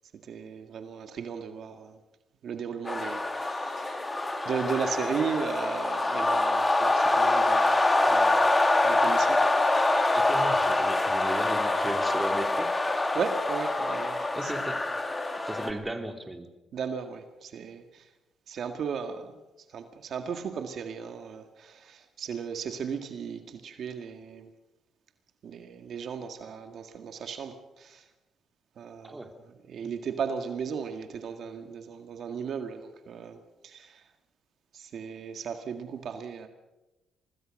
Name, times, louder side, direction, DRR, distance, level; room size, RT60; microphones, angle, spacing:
voice 1, 0.2-2.0 2.4-4.1 4.5-7.8 8.1-8.5 8.8-9.4 13.1-14.6 15.2-15.3 16.7-18.1 18.5-19.4 19.7-24.5 25.4-28.1 28.8-34.0 34.7-36.5, right 6 dB, 60° right, 7 dB, 1.9 m, -36 dB
sound 1, 2.9-15.7, left 2 dB, 20° left, 2.5 m, -25 dB
voice 2, 10.1-12.7 14.3-14.8 15.5-16.5 29.0-29.3, right 1 dB, 15° right, 6 dB, 2.9 m, -36 dB
25.0 x 19.5 x 6.5 m, 1.0 s
cardioid pair, 90°, 0 cm